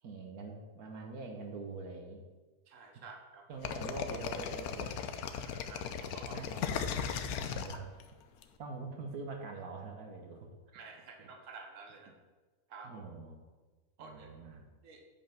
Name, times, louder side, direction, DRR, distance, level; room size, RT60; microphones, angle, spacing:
voice 1, 0.0-2.2 3.5-5.1 6.3-7.9 8.6-10.5 11.2-11.3 12.8-13.4 14.0-14.7, right 3 dB, 75° right, 2 dB, 1.5 m, -44 dB
voice 2, 2.7-3.5 5.3-6.4 7.7-7.8 10.7-12.1 12.7-13.0 14.0-14.3 14.8-15.0, right 4 dB, 60° right, 3 dB, 1.5 m, -51 dB
sound 1, 3.6-8.4, left 7 dB, 80° left, 1.2 m, -37 dB
9.3 x 5.5 x 5.8 m, 1.3 s
omnidirectional pair, 1.6 m